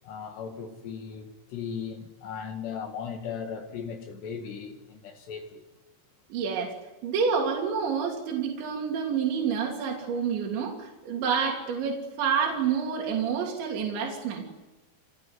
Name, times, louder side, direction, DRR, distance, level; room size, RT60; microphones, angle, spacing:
voice 1, 0.0-5.6, left 6 dB, 70° left, 4 dB, 4.0 m, -37 dB
voice 2, 6.3-6.7 7.0-14.4, right 6 dB, 80° right, 0 dB, 5.1 m, -28 dB
27.5 x 20.0 x 9.6 m, 1.1 s
omnidirectional pair, 5.1 m